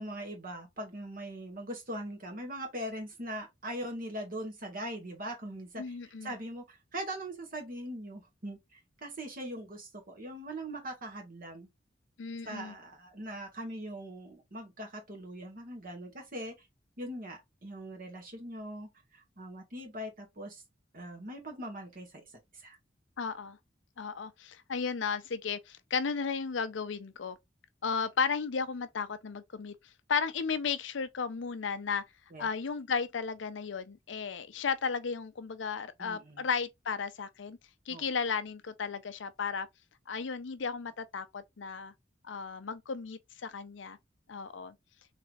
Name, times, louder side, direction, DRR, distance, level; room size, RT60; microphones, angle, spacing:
voice 1, 0.0-11.7 12.4-16.7 17.0-20.6 20.9-22.3 22.5-22.8 32.3-32.5 36.0-36.5 37.9-38.1, right 1 dB, 50° right, 1.7 m, -41 dB
voice 2, 5.8-6.3 12.2-12.7 23.2-23.6 24.0-27.4 27.8-29.7 30.1-32.0 32.4-37.6 37.9-39.7 40.1-41.9 42.2-44.0 44.3-44.7, left 5 dB, 80° left, 0.6 m, -34 dB
3.5 x 3.3 x 3.3 m
head